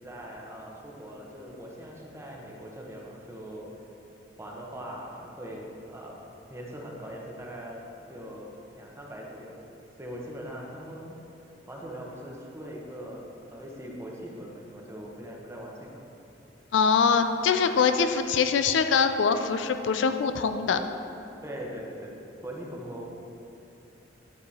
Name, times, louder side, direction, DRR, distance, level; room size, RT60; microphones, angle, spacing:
voice 1, 0.0-3.7 4.4-6.2 6.5-9.5 10.0-11.1 11.7-15.9 21.4-22.1 22.4-23.1, equal, 15° right, -2 dB, 0.9 m, -41 dB
voice 2, 16.7-20.8, left 6 dB, 70° left, 8 dB, 0.4 m, -23 dB
9.6 x 4.7 x 4.2 m, 2.8 s
head